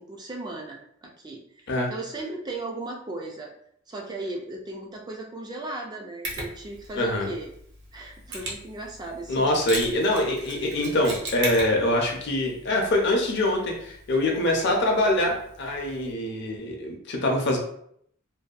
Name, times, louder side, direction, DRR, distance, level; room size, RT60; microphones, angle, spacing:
voice 1, 0.0-3.5 3.9-7.5 7.9-9.7 9.9-10.0, right 2 dB, 20° right, 0 dB, 0.3 m, -37 dB
Mechanisms, 6.2-16.1, right 1 dB, 55° right, 0.6 m, -39 dB
voice 2, 7.0-7.3 9.3-17.6, left 1 dB, 55° left, 1 dB, 0.6 m, -24 dB
2.6 x 2.2 x 2.4 m, 0.68 s
head